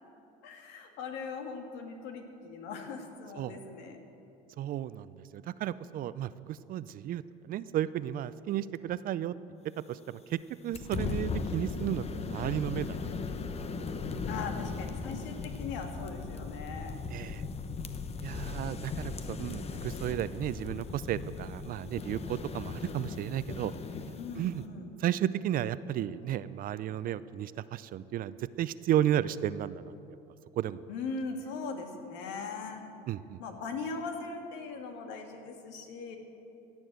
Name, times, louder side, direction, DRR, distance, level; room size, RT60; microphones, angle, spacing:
voice 1, 0.4-4.0 11.0-11.3 14.3-17.0 19.1-19.2 24.2-24.9 30.9-32.8 33.4-36.2, left 4 dB, 70° left, 4 dB, 2.0 m, -40 dB
voice 2, 4.6-9.3 9.9-13.1 17.1-17.4 18.2-23.7 24.4-24.6 25.0-29.9 30.6-30.8 33.1-33.4, right 11 dB, 50° right, 16 dB, 0.5 m, -33 dB
sound 1, 10.7-24.7, left 4 dB, 35° left, 1.0 m, -38 dB
16.0 x 7.2 x 7.8 m, 2.7 s
supercardioid pair, 90°, 19 cm